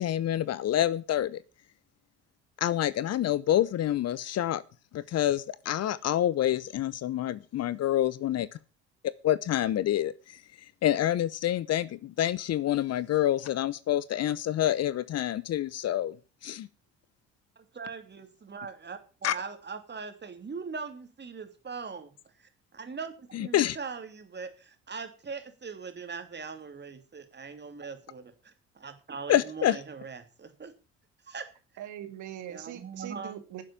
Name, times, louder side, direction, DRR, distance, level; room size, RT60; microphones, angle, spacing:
voice 1, 0.0-1.4 2.6-4.6 4.9-8.5 9.0-10.4 10.8-16.2 16.4-16.7 19.2-19.3 23.3-23.8 29.3-29.8, left 12 dB, 45° left, 0.8 m, -27 dB
voice 2, 17.6-22.1 22.4-30.7 31.2-31.5 32.5-33.3, right 5 dB, 30° right, 3.0 m, -41 dB
voice 3, 31.8-33.6, right 11 dB, 55° right, 2.1 m, -41 dB
11.0 x 7.5 x 8.7 m
hypercardioid pair, 55°, 35 cm